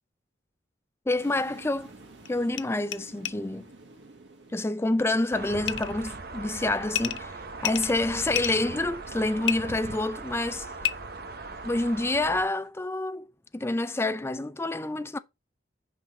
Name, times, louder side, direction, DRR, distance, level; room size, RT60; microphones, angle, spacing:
voice 1, 1.1-1.9 2.3-3.6 4.5-10.7 11.6-13.3 13.5-15.2, left 2 dB, 15° left, 0.4 m, -28 dB
sound 1, 1.2-12.7, right 2 dB, 80° right, 1.7 m, -53 dB
sound 2, 2.3-2.4 2.5-2.6 2.9-3.0 3.2-3.3 5.7-5.9 6.9-7.2 7.6-8.6 9.4-9.5 10.8-10.9, left 11 dB, 85° left, 0.5 m, -29 dB
sound 3, 5.3-12.4, right 3 dB, 55° right, 1.0 m, -39 dB
5.9 x 5.0 x 3.9 m
head